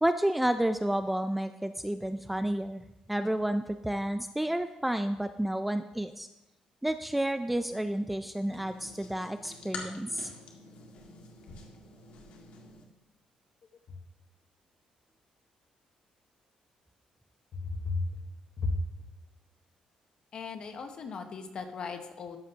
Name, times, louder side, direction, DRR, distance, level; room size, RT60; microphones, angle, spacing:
voice 1, 0.0-6.3 6.8-10.3, right 1 dB, 5° right, 9 dB, 0.3 m, -30 dB
sound 1, 8.4-12.8, left 3 dB, 70° left, 1.8 m, -47 dB
voice 2, 17.5-18.2 18.6-18.8 20.3-22.4, left 3 dB, 40° left, 6 dB, 1.2 m, -35 dB
13.5 x 11.5 x 2.8 m, 0.96 s
cardioid pair, 165°, 2 cm